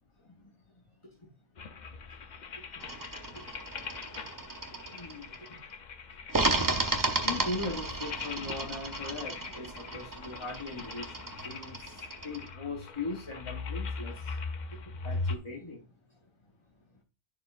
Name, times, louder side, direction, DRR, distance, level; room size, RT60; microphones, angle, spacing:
sound 1, 1.6-15.4, left 4 dB, 50° left, 0.6 m, -41 dB
sound 2, 2.8-5.5 6.3-12.5, right 2 dB, 25° right, 0.5 m, -34 dB
voice 1, 4.2-4.5 4.9-5.6 6.1-6.2 7.2-14.4 14.7-15.8, left 3 dB, 30° left, -1 dB, 1.0 m, -40 dB
10.5 x 4.5 x 2.4 m, 0.32 s
omnidirectional pair, 1.2 m